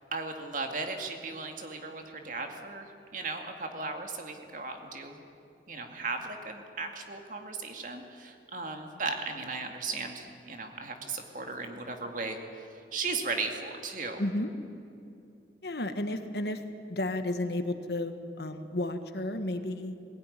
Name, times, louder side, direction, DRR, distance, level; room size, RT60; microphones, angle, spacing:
voice 1, 0.1-5.2 5.7-14.2, right 3 dB, 45° right, 4 dB, 2.3 m, -36 dB
voice 2, 14.2-14.5 15.6-16.6 16.9-20.0, left 1 dB, 65° left, 8 dB, 1.4 m, -32 dB
20.5 x 16.0 x 9.9 m, 2.6 s
head